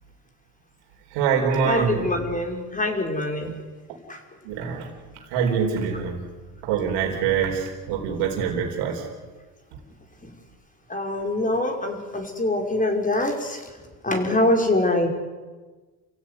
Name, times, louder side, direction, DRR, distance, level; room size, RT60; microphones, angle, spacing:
voice 1, 1.1-2.0 4.4-4.9 5.3-6.2 6.6-9.0, right 7 dB, 90° right, 1 dB, 4.7 m, -24 dB
voice 2, 1.7-3.6 4.1-4.2 10.9-13.6 14.0-15.1, left 1 dB, 20° left, 3 dB, 5.7 m, -24 dB
29.5 x 16.0 x 9.8 m, 1.3 s
cardioid pair, 100°, 40 cm